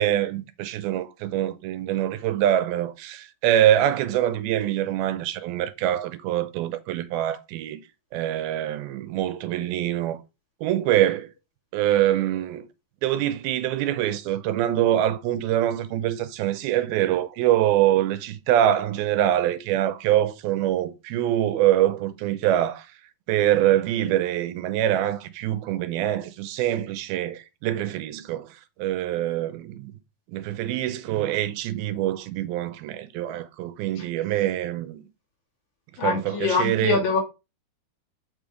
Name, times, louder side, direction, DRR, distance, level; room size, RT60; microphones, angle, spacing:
voice 1, 0.0-7.8 8.1-10.2 10.6-11.3 11.7-12.7 13.0-22.9 23.3-28.5 28.8-29.9 30.3-35.0 36.0-37.0, right 12 dB, 85° right, 2.6 m, -24 dB
voice 2, 36.0-37.2, left 5 dB, 55° left, 3.4 m, -24 dB
6.8 x 5.4 x 4.7 m
omnidirectional pair, 4.3 m